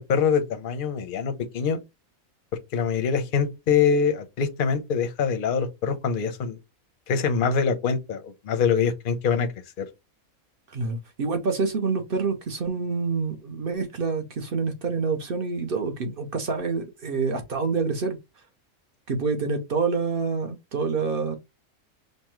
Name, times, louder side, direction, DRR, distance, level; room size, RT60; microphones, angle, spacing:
voice 1, 0.0-1.8 2.7-6.6 7.1-9.5 9.8-9.9, left 6 dB, 50° left, 0.7 m, -24 dB
voice 2, 10.7-18.2 19.1-21.4, right 4 dB, 50° right, 0.7 m, -27 dB
5.3 x 2.1 x 3.0 m
omnidirectional pair, 1.5 m